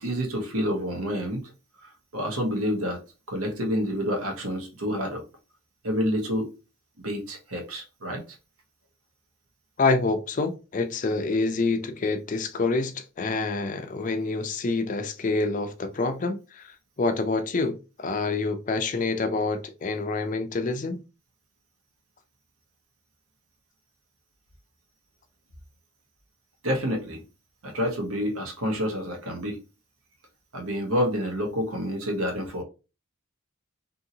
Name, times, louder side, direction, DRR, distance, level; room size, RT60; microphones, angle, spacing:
voice 1, 0.0-1.4 1.8-3.0 3.3-5.2 5.8-6.5 7.0-8.2 26.6-27.2 27.6-29.6 30.5-32.6, equal, 80° right, 1.0 m, -28 dB
voice 2, 9.8-21.0, left 3 dB, 35° left, 0.4 m, -27 dB
2.7 x 2.7 x 2.7 m
head